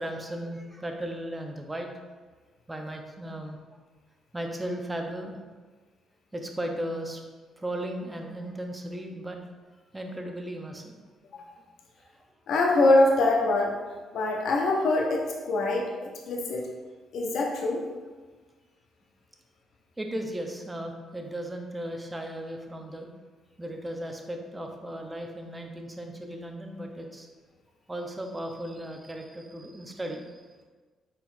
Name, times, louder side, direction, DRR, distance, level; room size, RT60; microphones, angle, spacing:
voice 1, 0.0-1.9 2.7-3.6 4.3-5.4 6.3-7.2 7.6-9.4 9.9-11.0 12.0-12.2 20.0-23.1 23.6-27.3 27.9-30.4, right 1 dB, 15° right, 3 dB, 0.6 m, -36 dB
voice 2, 12.5-13.8 14.1-16.6 17.1-17.8, left 2 dB, 70° left, 0 dB, 0.5 m, -24 dB
4.2 x 4.0 x 2.5 m, 1.4 s
cardioid pair, 90°, 0 cm